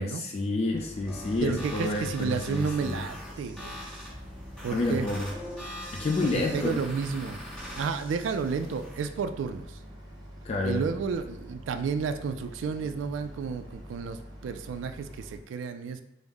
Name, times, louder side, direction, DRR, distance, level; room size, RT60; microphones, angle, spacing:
voice 1, 0.0-3.0 4.7-5.3 5.9-6.8 10.4-10.8, left 2 dB, 35° left, 1 dB, 0.3 m, -29 dB
Boat Water vehicle, 0.7-15.4, equal, 20° right, 0.7 m, -46 dB
sound 1, 1.1-9.1, left 1 dB, 5° left, 1.0 m, -42 dB
voice 2, 1.4-3.8 4.6-5.1 6.2-7.4 7.8-9.8 10.6-16.0, right 5 dB, 80° right, 10 dB, 0.3 m, -31 dB
5.2 x 2.0 x 3.4 m, 0.84 s
head